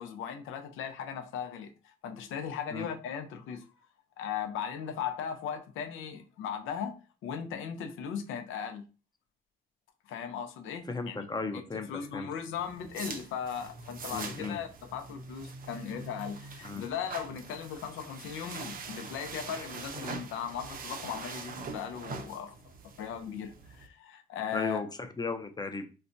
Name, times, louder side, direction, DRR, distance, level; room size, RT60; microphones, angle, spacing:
voice 1, 0.0-3.8 4.2-8.9 10.1-11.3 11.7-22.5 23.0-24.8, left 8 dB, 85° left, 0.6 m, -38 dB
voice 2, 10.9-12.3 14.1-14.6 16.6-16.8 24.5-25.8, left 3 dB, 20° left, 0.5 m, -36 dB
sound 1, 12.5-23.9, right 4 dB, 45° right, 0.6 m, -43 dB
4.1 x 2.2 x 2.6 m
cardioid pair, 90°, 20 cm